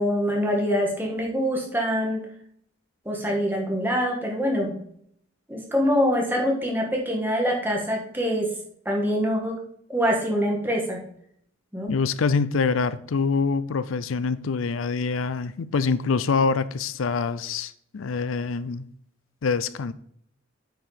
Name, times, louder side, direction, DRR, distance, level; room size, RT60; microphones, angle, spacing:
voice 1, 0.0-2.3 3.1-4.8 5.5-8.5 8.9-9.6 9.9-11.0 11.7-11.9, equal, 10° right, 1.8 m, -24 dB
voice 2, 11.9-18.8 19.4-19.9, left 4 dB, 80° left, 0.5 m, -25 dB
9.2 x 4.8 x 5.1 m
head